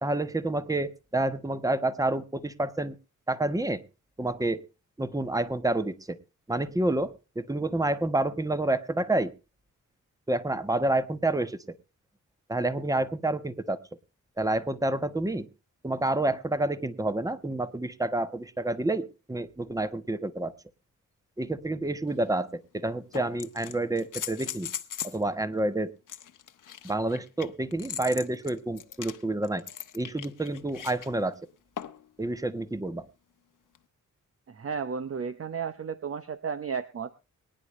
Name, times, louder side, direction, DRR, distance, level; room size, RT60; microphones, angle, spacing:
voice 1, 0.0-2.9 3.3-3.8 4.2-4.7 5.0-6.2 6.5-9.3 10.3-11.6 12.5-13.8 14.4-15.5 15.8-20.5 21.4-24.7 25.0-25.9 26.8-29.6 29.9-31.4 32.2-33.1, right 2 dB, 10° right, 12 dB, 1.2 m, -29 dB
sound 1, 22.1-22.2 23.1-25.2 26.1-31.1 31.8-32.1 33.7-33.8, left 9 dB, 70° left, 1.0 m, -39 dB
voice 2, 34.5-37.1, right 6 dB, 45° right, 11 dB, 0.8 m, -33 dB
23.5 x 10.0 x 3.2 m, 0.32 s
cardioid pair, 85°, 33 cm